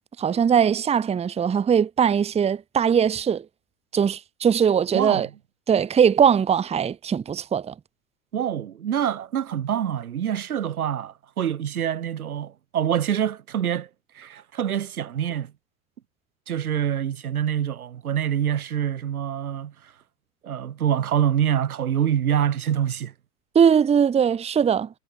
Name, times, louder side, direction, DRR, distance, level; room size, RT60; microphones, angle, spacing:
voice 1, 0.2-3.4 3.9-5.3 5.7-7.7 23.5-24.9, right 7 dB, 15° right, 0.8 m, -20 dB
voice 2, 4.9-5.3 8.3-13.9 14.1-15.5 16.5-19.7 20.4-23.1, right 9 dB, 85° right, 1.5 m, -25 dB
hypercardioid pair, 90°, 43 cm